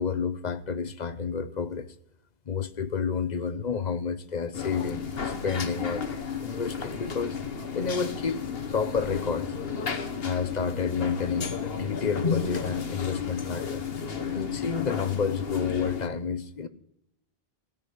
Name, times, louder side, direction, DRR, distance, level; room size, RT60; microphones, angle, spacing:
voice 1, 0.0-1.9 2.5-6.1 6.4-7.4 7.7-8.4 8.7-9.5 10.2-13.8 14.3-16.7, left 5 dB, 45° left, 0.9 m, -30 dB
sound 1, 4.5-16.1, left 6 dB, 70° left, 1.4 m, -33 dB
17.0 x 6.4 x 7.9 m
omnidirectional pair, 1.0 m